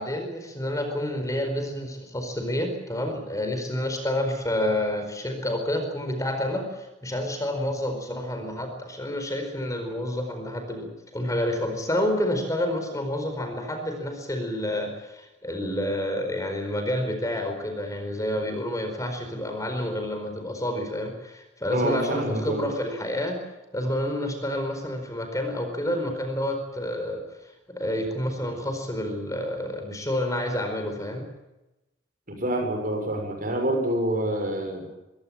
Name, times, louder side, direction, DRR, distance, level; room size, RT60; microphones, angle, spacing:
voice 1, 0.0-23.4 23.7-27.2 27.7-31.3, left 1 dB, 20° left, 5 dB, 4.6 m, -29 dB
voice 2, 21.7-22.7 32.3-34.9, right 1 dB, 45° right, 4 dB, 6.6 m, -27 dB
24.0 x 17.0 x 9.0 m, 0.99 s
head